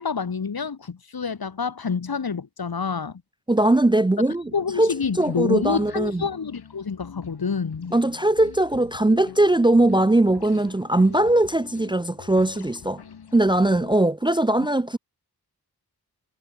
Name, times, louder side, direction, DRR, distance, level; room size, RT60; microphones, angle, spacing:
voice 1, 0.0-3.2 4.5-7.9, left 5 dB, 65° left, 2.1 m, -27 dB
voice 2, 3.5-4.5 4.8-6.2 7.9-13.0 13.3-15.0, right 1 dB, 15° right, 0.5 m, -20 dB
sound 1, 4.3-14.0, left 7 dB, 90° left, 1.6 m, -44 dB
cardioid pair, 50°, 38 cm